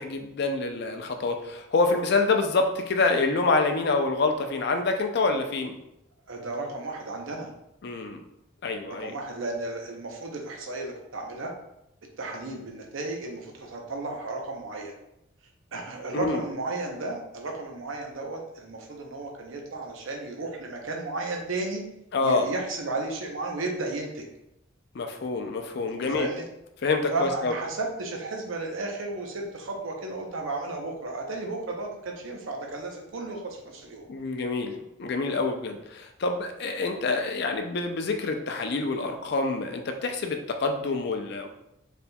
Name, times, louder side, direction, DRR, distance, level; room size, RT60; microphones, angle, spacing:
voice 1, 0.0-5.7 7.8-8.2 8.6-9.1 16.1-16.4 22.1-22.5 24.9-26.3 26.8-27.5 34.1-41.5, left 3 dB, 50° left, 5 dB, 0.4 m, -27 dB
voice 2, 6.3-7.5 9.0-11.5 12.2-14.9 15.7-21.8 22.2-24.3 26.1-26.5 27.1-34.1, right 2 dB, 70° right, 1 dB, 0.7 m, -33 dB
4.2 x 3.4 x 2.2 m, 0.85 s
head